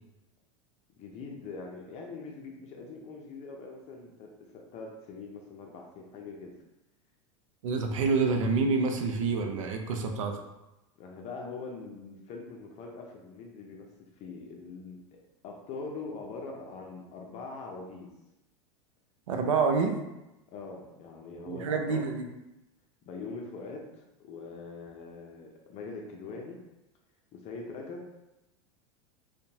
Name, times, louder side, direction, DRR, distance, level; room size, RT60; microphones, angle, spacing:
voice 1, 1.0-6.6 11.0-15.0 15.4-18.1 20.5-22.1 23.1-26.6 27.3-28.1, left 4 dB, 40° left, 1 dB, 0.5 m, -42 dB
voice 2, 7.6-10.4 19.3-20.0 21.5-22.3, right 4 dB, 85° right, 4 dB, 0.4 m, -27 dB
2.7 x 2.2 x 2.7 m, 0.96 s
hypercardioid pair, 105°, 16 cm